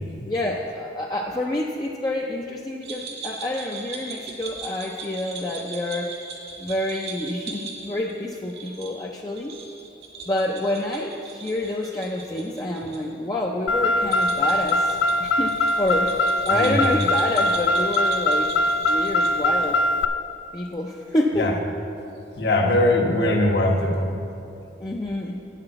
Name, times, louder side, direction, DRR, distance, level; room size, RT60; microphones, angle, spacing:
voice 1, 0.2-6.2 6.6-9.5 10.3-16.2 16.5-19.8 20.5-21.5 24.8-25.4, left 1 dB, 20° left, -1 dB, 0.4 m, -28 dB
sound 1, 2.8-13.0 13.2-13.3 14.0-19.8, right 4 dB, 75° right, 2.0 m, -39 dB
Car, 13.7-20.1, left 1 dB, 90° left, 0.4 m, -22 dB
voice 2, 16.5-16.8 21.4-21.5 22.4-24.1, left 1 dB, 70° left, 0 dB, 1.2 m, -21 dB
8.9 x 5.8 x 7.8 m, 2.8 s
head